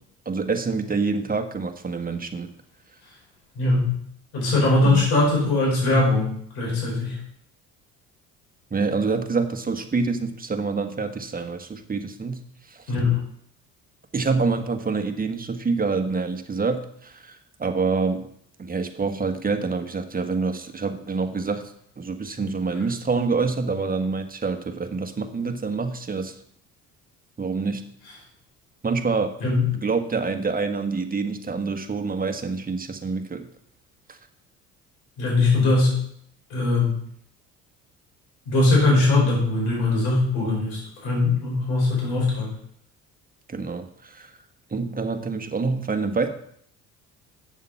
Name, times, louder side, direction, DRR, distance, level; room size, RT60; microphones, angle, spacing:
voice 1, 0.2-2.5 4.8-5.0 8.7-12.4 14.1-18.3 18.6-21.6 22.0-26.3 27.4-27.8 28.8-29.3 29.7-33.5 43.5-44.3 44.7-46.3, right 4 dB, 25° right, 6 dB, 1.4 m, -26 dB
voice 2, 3.5-4.0 4.3-7.2 12.9-13.2 29.4-29.7 35.2-35.9 36.5-36.9 38.5-42.5, left 2 dB, 85° left, -2 dB, 5.2 m, -21 dB
8.5 x 7.4 x 5.8 m, 0.67 s
supercardioid pair, 65°, 36 cm